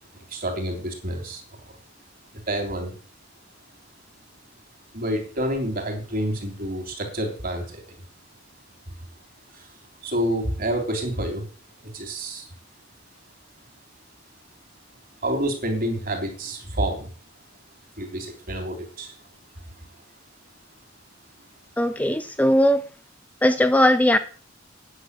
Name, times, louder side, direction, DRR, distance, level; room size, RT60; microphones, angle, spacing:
voice 1, 0.1-1.8 2.3-2.9 4.9-8.0 8.9-9.0 9.5-9.7 10.0-11.5 11.8-12.5 15.2-17.1 18.0-19.2, right 1 dB, 45° right, 3.4 m, -28 dB
voice 2, 21.8-22.9 23.4-24.2, left 1 dB, 10° left, 0.5 m, -19 dB
9.8 x 6.3 x 8.2 m
head